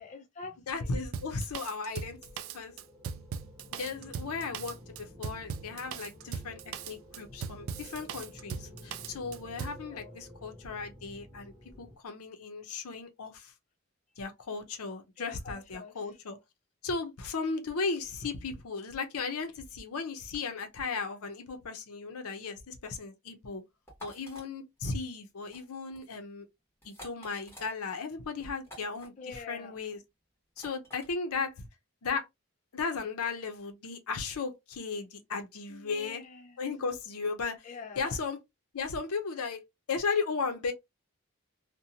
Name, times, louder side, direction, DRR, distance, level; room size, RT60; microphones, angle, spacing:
voice 1, 0.0-1.0 9.9-10.1 15.2-15.9 29.2-29.8 35.7-36.6 37.6-38.2, left 5 dB, 35° left, 0.4 m, -45 dB
voice 2, 0.7-2.2 2.5-2.7 3.7-6.6 6.9-13.5 14.2-16.4 16.8-23.6 24.0-26.5 26.8-30.0 30.6-31.7 32.0-32.2 32.7-36.2 36.6-37.6 38.0-38.4 38.7-39.6 39.9-40.7, left 4 dB, 80° left, 0.6 m, -36 dB
Drum kit, 1.1-9.8, right 6 dB, 65° right, 0.3 m, -39 dB
sound 1, 1.9-12.0, equal, 15° right, 0.6 m, -51 dB
sound 2, 23.9-24.4 25.4-25.6 25.9-26.1 26.8-27.7 28.6-29.1 30.6-31.1, equal, 10° left, 1.2 m, -49 dB
2.7 x 2.1 x 2.7 m
head